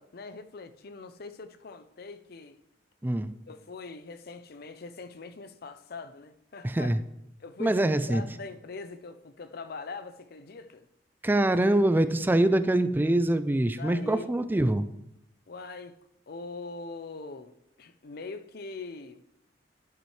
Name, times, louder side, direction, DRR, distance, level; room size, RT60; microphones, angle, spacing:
voice 1, 0.0-2.6 3.5-7.0 7.4-10.9 13.8-14.3 15.5-16.0 16.3-17.5 17.8-19.2, left 3 dB, 60° left, 0.6 m, -42 dB
voice 2, 6.6-7.0 7.6-8.2 11.2-14.9, right 1 dB, 10° right, 0.4 m, -24 dB
11.0 x 8.6 x 3.2 m
head